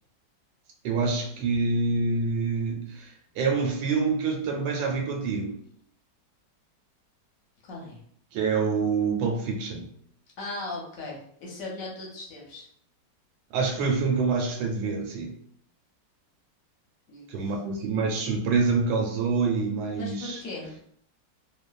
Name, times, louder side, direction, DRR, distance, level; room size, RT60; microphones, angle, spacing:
voice 1, 0.8-5.5 8.3-9.9 13.5-15.3 17.3-20.4, right 4 dB, 90° right, 1 dB, 1.3 m, -26 dB
voice 2, 7.6-8.0 10.4-12.7 17.1-17.6 19.9-20.7, left 2 dB, 65° left, -2 dB, 0.9 m, -38 dB
3.0 x 2.1 x 2.3 m, 0.66 s
omnidirectional pair, 1.9 m